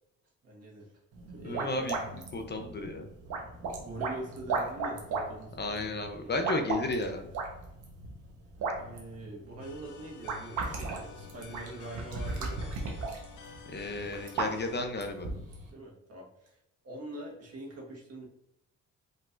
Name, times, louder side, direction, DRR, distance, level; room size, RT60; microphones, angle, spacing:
voice 1, 0.4-0.9 1.3-2.1 3.8-5.9 6.2-6.6 8.7-12.6 15.7-16.6 16.8-18.3, right 2 dB, 55° right, -1 dB, 1.6 m, -44 dB
sound 1, 1.1-15.7, right 3 dB, 85° right, 1.2 m, -37 dB
voice 2, 1.4-2.0 2.3-3.1 5.6-7.3 13.7-15.3, left 2 dB, 35° left, 5 dB, 0.8 m, -33 dB
sound 2, 9.6-14.8, left 6 dB, 75° left, 0.8 m, -50 dB
5.3 x 3.8 x 2.6 m, 0.83 s
cardioid pair, 90°, 30 cm